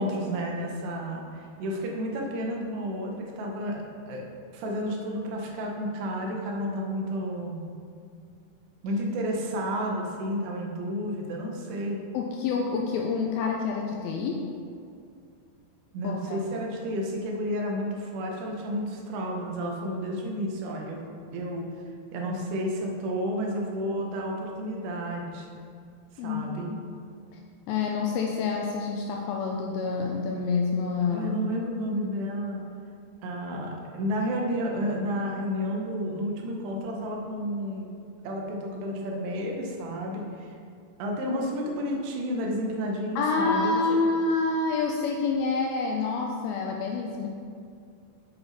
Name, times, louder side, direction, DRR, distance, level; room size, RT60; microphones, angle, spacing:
voice 1, 0.0-4.2 4.5-7.6 8.8-12.0 15.9-21.0 21.3-21.7 22.1-25.5 26.2-26.7 31.1-32.6 33.2-37.9 38.2-40.5 41.0-44.0, equal, 85° right, 0 dB, 3.1 m, -31 dB
voice 2, 12.1-14.4 16.0-16.4 26.2-26.8 27.3-27.4 27.7-31.3 43.2-47.3, left 4 dB, 80° left, 0 dB, 2.2 m, -27 dB
7.4 x 7.0 x 4.0 m, 2.3 s
omnidirectional pair, 4.7 m